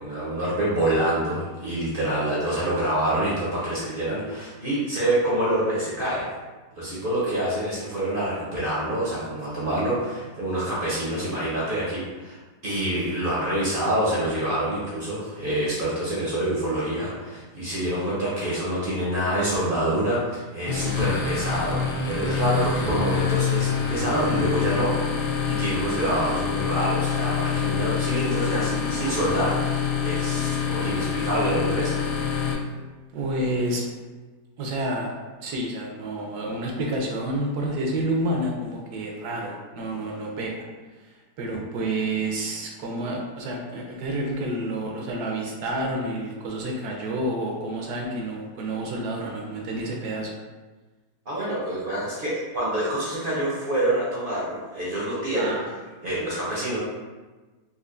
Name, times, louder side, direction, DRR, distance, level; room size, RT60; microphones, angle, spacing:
voice 1, 0.0-6.2 6.8-12.4 12.6-31.9 51.3-55.6 56.0-56.8, right 1 dB, 45° right, -8 dB, 0.7 m, -26 dB
sound 1, 20.7-32.5, left 6 dB, 80° left, 1.2 m, -26 dB
voice 2, 33.1-33.8 34.6-35.1 35.4-40.7 41.0-50.3 55.4-55.7, right 1 dB, 75° right, 0 dB, 1.1 m, -29 dB
4.2 x 2.5 x 2.5 m, 1.3 s
omnidirectional pair, 1.8 m